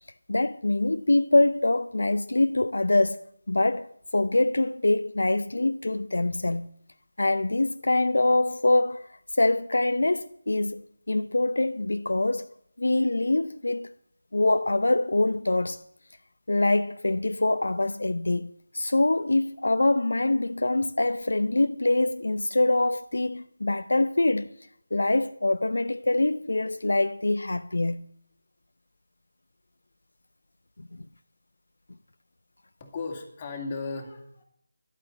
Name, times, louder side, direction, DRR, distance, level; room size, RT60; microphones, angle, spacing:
voice 1, 0.3-6.7 7.2-12.5 12.8-13.9 14.3-15.8 16.5-24.5 24.9-28.0 30.8-30.9, left 2 dB, 70° left, 0.5 m, -24 dB
voice 2, 32.8-34.4, left 4 dB, 25° left, 2.3 m, -35 dB
11.5 x 8.8 x 8.9 m
figure-of-eight pair, 160°, 0 cm